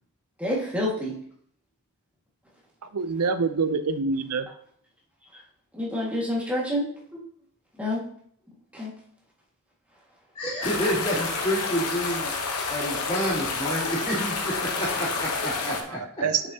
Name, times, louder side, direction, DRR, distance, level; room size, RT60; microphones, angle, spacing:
voice 1, 0.4-1.1 5.7-6.9 7.8-8.0 8.7-8.9, left 1 dB, 5° right, -5 dB, 1.8 m, -27 dB
voice 2, 2.9-4.5 16.0-16.4, right 5 dB, 80° right, 11 dB, 0.6 m, -26 dB
voice 3, 10.3-12.3 12.7-16.4, equal, 25° left, -9 dB, 2.9 m, -29 dB
sound 1, 10.6-15.8, left 4 dB, 75° left, 1.0 m, -29 dB
6.8 x 6.1 x 2.8 m, 0.62 s
head